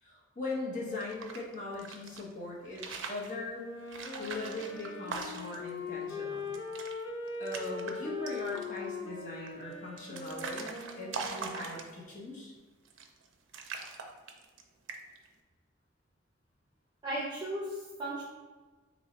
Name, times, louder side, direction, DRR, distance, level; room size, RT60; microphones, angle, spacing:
voice 1, 0.0-3.6 4.2-6.6 7.4-12.5, left 2 dB, 40° left, -4 dB, 0.8 m, -40 dB
sound 1, 0.9-2.2 2.6-3.3 3.9-5.7 6.1-6.2 6.4-6.9 7.3-7.9 8.3-8.8 9.5-12.2 12.8-13.3 13.5-14.6 14.9-15.3, right 4 dB, 80° right, 0.4 m, -41 dB
Wind instrument woodwind instrument, 3.5-11.9, left 4 dB, 75° left, 0.5 m, -41 dB
voice 2, 17.0-18.2, right 1 dB, 20° right, -7 dB, 0.6 m, -36 dB
3.0 x 2.7 x 4.0 m, 1.3 s
head